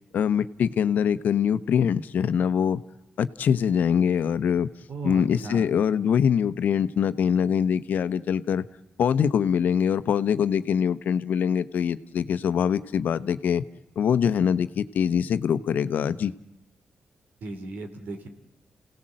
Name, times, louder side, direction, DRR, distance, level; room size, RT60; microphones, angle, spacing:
voice 1, 0.1-2.8 3.2-4.7 5.0-8.7 9.0-13.6 14.0-16.3, left 8 dB, 75° left, 13 dB, 0.9 m, -23 dB
voice 2, 4.9-5.7 17.4-18.3, right 3 dB, 80° right, 7 dB, 3.1 m, -36 dB
28.5 x 17.5 x 7.7 m, 0.92 s
cardioid pair, 70°, 3 cm